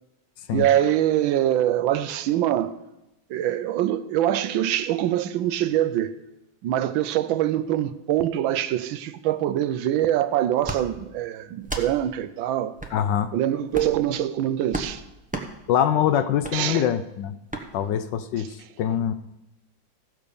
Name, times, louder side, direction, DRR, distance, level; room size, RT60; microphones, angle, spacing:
voice 1, 0.5-2.8 3.3-6.2 6.6-12.7 13.3-15.0 16.5-16.9, right 12 dB, 80° right, 1.4 m, -24 dB
sound 1, 10.6-10.8 11.6-11.9 12.8-13.0 13.7-14.0 14.7-14.9 15.3-15.5 16.4-16.6 17.5-17.7, right 2 dB, 15° right, 0.3 m, -31 dB
voice 2, 12.9-13.3 15.7-17.3 17.7-19.1, left 9 dB, 75° left, 1.1 m, -24 dB
15.5 x 5.3 x 6.8 m
omnidirectional pair, 2.2 m